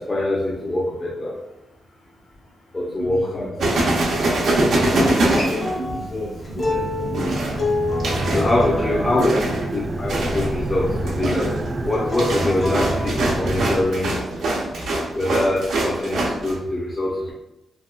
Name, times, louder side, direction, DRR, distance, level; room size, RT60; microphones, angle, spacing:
voice 1, 0.0-1.3 2.7-3.7 4.7-5.4 8.3-9.3 9.7-11.5 11.8-14.2 15.1-17.3, left 1 dB, 25° left, -5 dB, 0.6 m, -24 dB
voice 2, 2.8-3.5 4.8-7.3 8.7-9.7, left 1 dB, 65° left, -4 dB, 1.3 m, -31 dB
sound 1, 3.6-6.2 7.1-8.5 9.2-9.7 10.1-10.5 10.9-16.5, right 2 dB, 80° right, 0.7 m, -23 dB
Acoustic guitar, 5.1-10.3 11.9-13.1, left 2 dB, 45° left, 0.9 m, -29 dB
sound 2, 6.4-13.8, right 1 dB, 30° right, 0.3 m, -28 dB
3.5 x 2.3 x 2.3 m, 0.89 s
cardioid pair, 95°, 0 cm